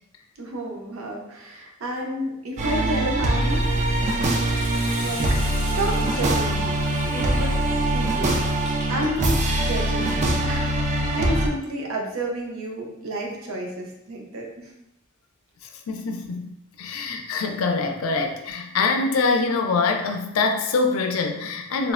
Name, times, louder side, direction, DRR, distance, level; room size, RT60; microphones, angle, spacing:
voice 1, 0.4-4.6 5.0-6.7 7.1-7.6 7.8-8.4 8.9-10.2 10.4-14.7, right 1 dB, 80° right, -1 dB, 0.6 m, -31 dB
sound 1, 2.6-11.5, right 1 dB, 35° right, 0.3 m, -23 dB
Hiss, 3.4-9.2, left 1 dB, 25° left, 0.5 m, -41 dB
voice 2, 15.9-21.9, left 4 dB, 85° left, 4 dB, 0.4 m, -24 dB
3.2 x 2.0 x 2.4 m, 0.85 s
head